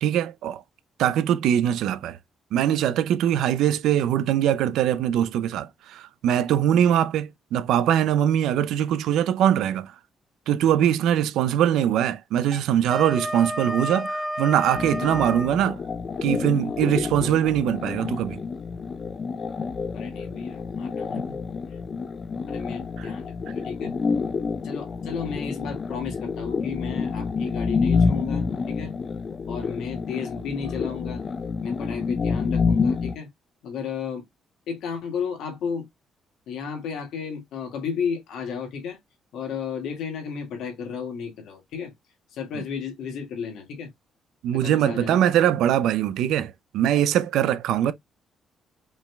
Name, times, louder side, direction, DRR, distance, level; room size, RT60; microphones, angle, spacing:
voice 1, 0.0-0.6 1.0-2.2 2.5-9.9 10.5-15.8 16.2-18.4 23.0-23.1 44.4-47.9, right 10 dB, 85° right, 0.4 m, -22 dB
Wind instrument woodwind instrument, 12.4-15.5, equal, ahead, 1.4 m, -31 dB
sound 1, 14.7-33.2, left 5 dB, 40° left, 0.6 m, -28 dB
voice 2, 19.9-21.4 21.7-21.8 22.5-24.0 24.6-29.0 29.5-31.2 31.6-33.3 33.6-34.3 34.7-35.9 36.5-39.0 39.3-41.9 42.3-43.9 44.5-45.2 47.8-47.9, left 6 dB, 80° left, 1.8 m, -33 dB
5.2 x 3.2 x 2.2 m
cardioid pair, 90°, 0 cm